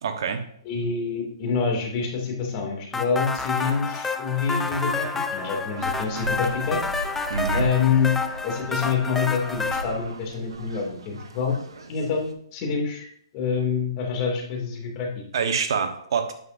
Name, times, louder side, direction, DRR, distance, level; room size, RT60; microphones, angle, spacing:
voice 1, 0.0-0.4 7.3-7.7 15.3-16.3, right 6 dB, 65° right, 7 dB, 1.1 m, -26 dB
voice 2, 0.6-6.8 7.5-8.1 8.4-11.5 11.9-13.1 13.3-15.2, left 6 dB, 35° left, 1 dB, 2.4 m, -26 dB
sound 1, 2.9-9.8, left 4 dB, 10° left, 0.5 m, -29 dB
sound 2, 5.8-12.3, right 2 dB, 85° right, 1.1 m, -36 dB
9.2 x 8.1 x 2.6 m, 0.63 s
hypercardioid pair, 140°, 3 cm